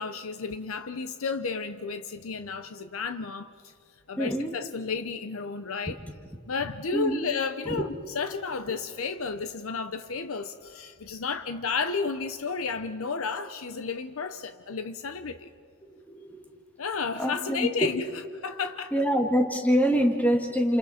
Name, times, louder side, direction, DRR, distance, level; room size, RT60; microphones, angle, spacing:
voice 1, 0.0-3.7 4.1-6.0 6.5-15.5 16.8-18.0 18.4-18.9, left 5 dB, 80° left, 0.8 m, -32 dB
voice 2, 4.2-4.5 6.9-7.2 7.7-7.8 15.9-16.4 17.2-18.0 18.9-20.8, equal, 5° left, 1.8 m, -25 dB
29.5 x 28.5 x 4.3 m
head